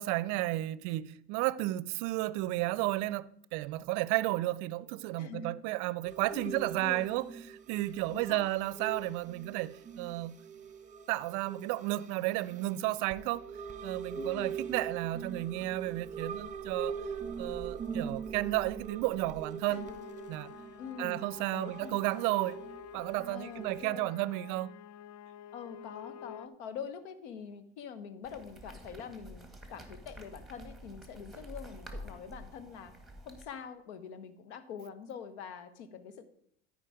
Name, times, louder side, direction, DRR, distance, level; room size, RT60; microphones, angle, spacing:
voice 1, 0.0-7.2 7.7-10.4 11.1-13.5 13.8-17.0 17.4-19.9 20.3-20.5 21.0-22.6 22.9-24.7, right 18 dB, 60° right, 0.5 m, -33 dB
voice 2, 5.2-5.5 6.3-7.1 8.1-8.5 14.1-14.5 19.7-19.9 20.8-21.2 21.5-22.1 23.3-24.1 25.5-32.9 33.2-36.3, left 6 dB, 80° left, 1.1 m, -45 dB
sound 1, 6.0-23.8, right 6 dB, 20° right, 1.2 m, -43 dB
sound 2, 19.6-26.5, left 9 dB, 50° left, 0.6 m, -49 dB
sound 3, 28.2-33.4, equal, ahead, 1.9 m, -48 dB
13.0 x 5.1 x 4.9 m
hypercardioid pair, 85°, 34 cm